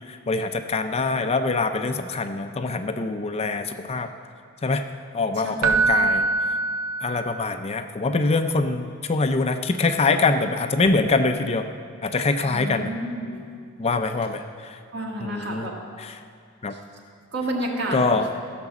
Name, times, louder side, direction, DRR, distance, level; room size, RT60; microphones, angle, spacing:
voice 1, 0.1-4.1 4.6-4.8 5.1-6.2 7.0-11.7 12.0-12.9 13.8-14.8 15.2-15.7 16.0-16.1 16.6-16.7 17.9-18.3, left 3 dB, 30° left, 7 dB, 0.4 m, -24 dB
voice 2, 5.4-6.2 12.4-13.4 14.9-15.7 16.7-16.8 17.3-18.2, right 1 dB, 55° right, -1 dB, 1.8 m, -31 dB
Keyboard (musical), 5.6-7.6 10.8-11.0, right 3 dB, 75° right, 0.5 m, -23 dB
14.5 x 6.0 x 7.1 m, 2.2 s
head